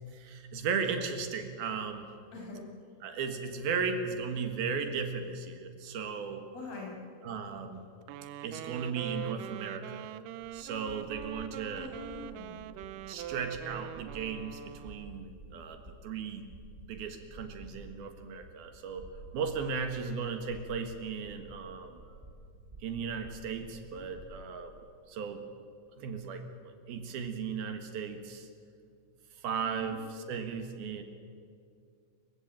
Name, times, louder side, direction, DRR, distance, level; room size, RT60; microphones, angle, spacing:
voice 1, 0.1-2.1 3.0-6.4 7.2-7.8 8.4-10.1 10.5-11.9 13.1-16.5 16.9-19.0 19.3-22.0 22.8-24.7 25.1-25.4 26.0-28.5 29.4-31.0, right 5 dB, 70° right, 7 dB, 3.3 m, -36 dB
voice 2, 2.3-2.6 6.5-6.9 11.8-12.6 22.0-22.2 29.7-30.0, left 3 dB, 65° left, -2 dB, 8.1 m, -44 dB
Wind instrument woodwind instrument, 8.0-15.3, right 11 dB, 85° right, 1.9 m, -43 dB
sound 1, 10.4-24.4, right 1 dB, 10° right, 6.5 m, -52 dB
28.0 x 16.0 x 9.1 m, 2.3 s
omnidirectional pair, 4.7 m